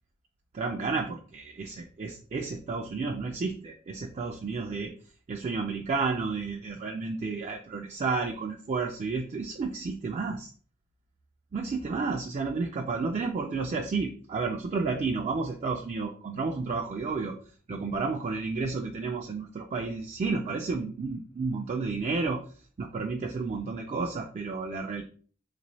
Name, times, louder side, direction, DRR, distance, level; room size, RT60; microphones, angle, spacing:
voice 1, 0.5-4.9 5.3-10.5 11.5-17.4 17.7-22.4 22.8-25.0, right 4 dB, 30° right, 2 dB, 0.3 m, -31 dB
3.6 x 3.0 x 2.6 m, 0.43 s
head